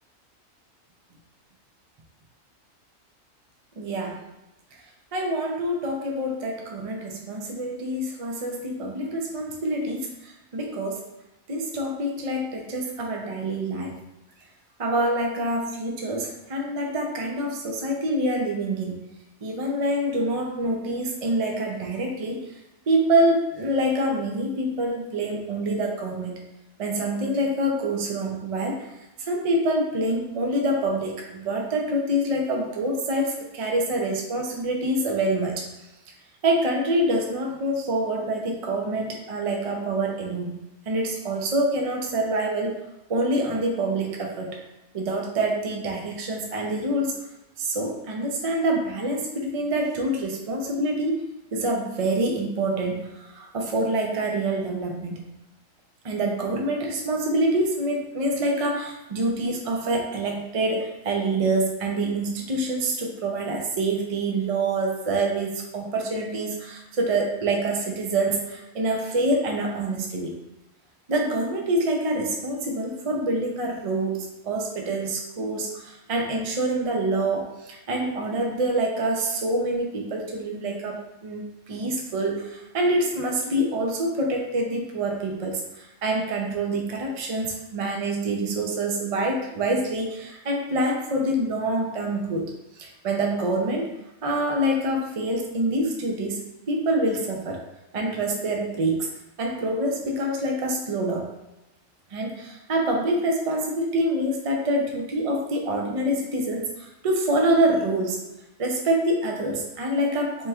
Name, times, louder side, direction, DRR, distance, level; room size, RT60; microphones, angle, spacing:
voice 1, 3.8-4.2 5.1-11.1 11.5-14.0 14.8-19.1 19.4-22.4 22.9-26.5 26.8-28.9 29.2-35.7 36.4-40.6 40.9-42.8 43.1-44.6 44.9-47.2 47.6-55.3 56.0-70.4 71.1-92.5 92.8-93.9 94.2-97.6 97.9-99.1 99.4-101.3 102.1-108.2 108.6-110.5, right 1 dB, 55° right, 0 dB, 0.4 m, -26 dB
4.4 x 3.0 x 2.3 m, 0.94 s
omnidirectional pair, 1.4 m